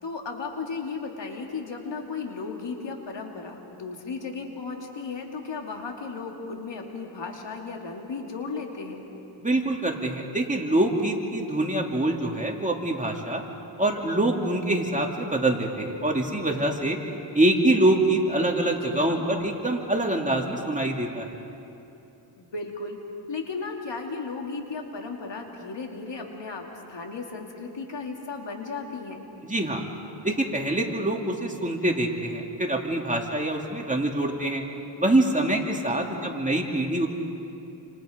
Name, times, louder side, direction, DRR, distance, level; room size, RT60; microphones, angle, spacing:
voice 1, 0.0-9.1 18.8-19.3 22.4-23.0 23.3-29.3 35.9-36.4, left 4 dB, 70° left, 1 dB, 2.9 m, -35 dB
voice 2, 9.4-13.4 13.8-17.0 17.3-21.3 29.4-29.8 30.2-34.6 35.0-37.1, right 1 dB, 15° right, 0 dB, 2.7 m, -25 dB
29.5 x 27.0 x 5.2 m, 2.8 s
cardioid pair, 85°, 45 cm